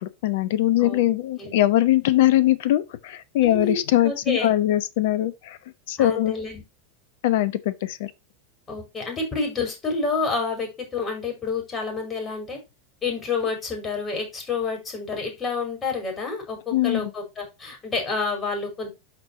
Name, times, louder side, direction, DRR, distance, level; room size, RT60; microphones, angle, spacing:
voice 1, 0.0-5.6 5.9-6.3 7.2-8.1 16.7-17.1, left 14 dB, 55° left, 0.8 m, -21 dB
voice 2, 3.4-3.7 4.0-4.5 6.0-6.6 8.7-12.6 13.0-18.9, left 4 dB, 25° left, 5.0 m, -29 dB
12.0 x 4.6 x 2.9 m
figure-of-eight pair, 85°, 0 cm